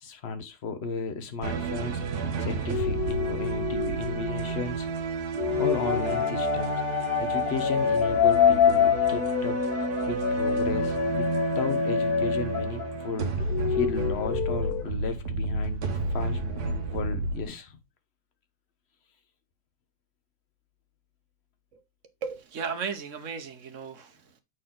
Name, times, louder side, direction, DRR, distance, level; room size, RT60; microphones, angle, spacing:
voice 1, 0.0-2.0 2.4-4.9 5.6-6.7 7.2-9.6 10.1-11.3 11.5-17.8, left 4 dB, 45° left, 1.1 m, -34 dB
sound 1, 1.4-17.4, right 4 dB, 70° right, 1.4 m, -31 dB
sound 2, 2.7-4.8 5.4-13.1 13.4-14.8, left 8 dB, 75° left, 1.1 m, -26 dB
voice 2, 22.2-24.4, right 6 dB, 55° right, 1.1 m, -35 dB
7.7 x 4.2 x 3.7 m
omnidirectional pair, 1.8 m